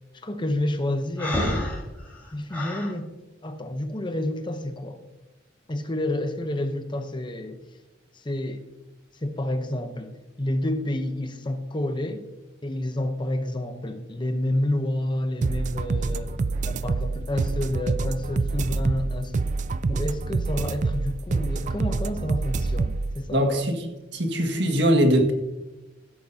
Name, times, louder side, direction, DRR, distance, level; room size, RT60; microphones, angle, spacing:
voice 1, 0.1-1.5 2.3-3.1 3.4-5.0 5.7-7.6 8.1-8.6 9.2-10.1 10.4-12.3 12.6-19.5 19.9-23.7, left 1 dB, 25° left, 0.8 m, -29 dB
Breathing, 1.2-2.9, left 1 dB, 10° left, 4.2 m, -29 dB
sound 1, 15.4-23.2, right 3 dB, 40° right, 0.4 m, -26 dB
voice 2, 23.3-23.8 24.1-25.3, equal, 65° right, 1.8 m, -21 dB
16.0 x 8.7 x 2.7 m
head